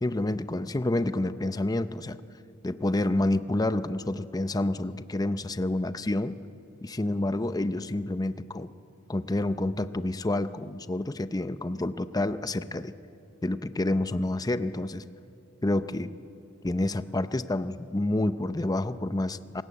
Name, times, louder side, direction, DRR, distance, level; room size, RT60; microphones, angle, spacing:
voice 1, 0.0-2.2 2.6-6.4 6.8-8.7 9.1-12.9 13.4-15.0 15.6-16.1 16.6-19.6, left 1 dB, 20° left, 12 dB, 0.6 m, -28 dB
26.5 x 19.5 x 8.5 m, 2.6 s
head